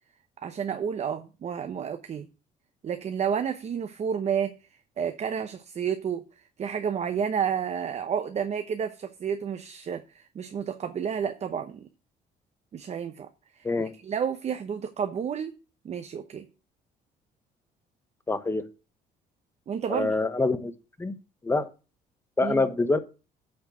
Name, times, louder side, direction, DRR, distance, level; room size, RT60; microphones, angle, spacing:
voice 1, 0.4-2.3 2.8-4.6 5.0-6.2 6.6-11.9 12.7-13.3 13.6-13.7 14.0-15.6 15.8-16.5 19.7-20.2 22.4-22.7, right 7 dB, 40° right, 0.8 m, -30 dB
voice 2, 18.3-18.6 19.9-20.7 21.0-21.2 21.4-21.7 22.4-23.0, left 3 dB, 15° left, 1.0 m, -25 dB
8.5 x 4.5 x 5.9 m
cardioid pair, 110°, 17 cm